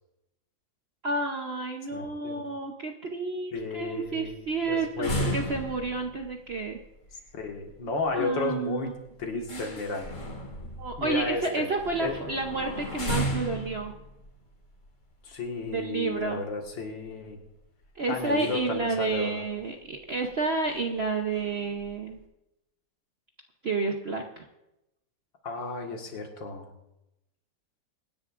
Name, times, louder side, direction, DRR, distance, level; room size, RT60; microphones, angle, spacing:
voice 1, 1.0-6.8 8.1-8.9 9.3-9.7 10.8-13.9 15.7-16.4 17.9-22.2 23.6-24.5, right 3 dB, 55° right, 3 dB, 0.7 m, -30 dB
voice 2, 1.9-2.4 3.5-4.4 4.7-5.4 7.3-10.1 10.6-10.7 11.0-11.7 12.0-12.2 15.2-17.4 18.1-19.4 25.4-26.7, left 3 dB, 75° left, 2 dB, 2.4 m, -33 dB
sound 1, 3.6-16.2 16.7-16.8 17.0-17.3 18.3-18.9 19.1-19.2 19.6-19.7 20.3-20.4 20.6-21.0 21.3-22.1, equal, 40° left, 2.5 m, -36 dB
24.0 x 10.5 x 2.5 m, 0.91 s
omnidirectional pair, 2.1 m